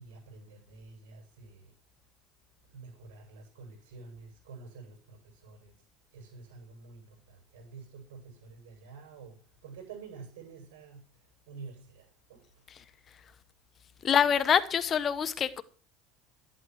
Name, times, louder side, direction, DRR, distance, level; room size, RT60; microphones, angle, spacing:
voice 1, 0.0-1.7 2.6-5.8 6.1-12.7, right 4 dB, 90° right, 7.9 m, -49 dB
voice 2, 14.0-15.6, left 8 dB, 35° left, 1.1 m, -26 dB
13.0 x 11.0 x 4.8 m
supercardioid pair, 120°, 0 cm